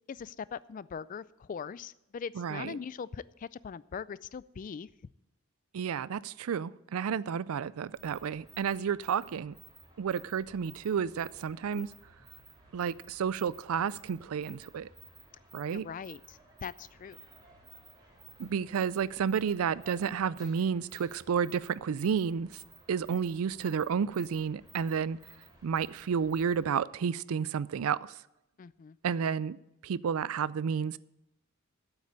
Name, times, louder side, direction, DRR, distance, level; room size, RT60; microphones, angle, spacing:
voice 1, 0.1-4.9 8.8-8.9 15.7-17.2 28.6-29.0, left 6 dB, 40° left, 19 dB, 0.3 m, -41 dB
voice 2, 2.4-2.8 5.7-9.5 10.0-11.9 12.7-14.9 15.5-15.8 18.4-22.5 22.9-25.2 25.6-28.0 29.0-29.6 29.8-31.0, right 7 dB, 80° right, 20 dB, 0.4 m, -31 dB
sound 1, 7.9-26.8, right 4 dB, 20° right, 2.5 m, -55 dB
8.5 x 8.2 x 8.7 m, 0.89 s
head